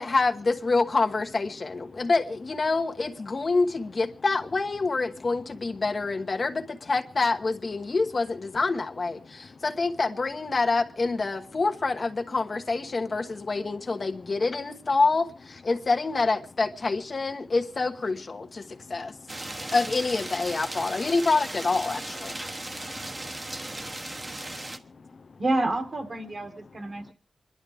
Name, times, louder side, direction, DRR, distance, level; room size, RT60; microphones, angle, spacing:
voice 1, 0.0-19.1 19.7-22.3, left 3 dB, 50° left, 1.2 m, -26 dB
voice 2, 9.2-9.6 13.0-13.4 13.9-14.3 17.4-17.5 18.4-19.7 20.9-21.0 22.3-25.4 26.9-27.1, left 4 dB, 65° left, 0.7 m, -51 dB
sound 1, 19.3-24.8, right 1 dB, 30° right, 1.2 m, -37 dB
voice 3, 25.4-27.1, right 2 dB, 55° right, 2.1 m, -28 dB
28.0 x 11.5 x 3.5 m
wide cardioid pair, 110°, 0 cm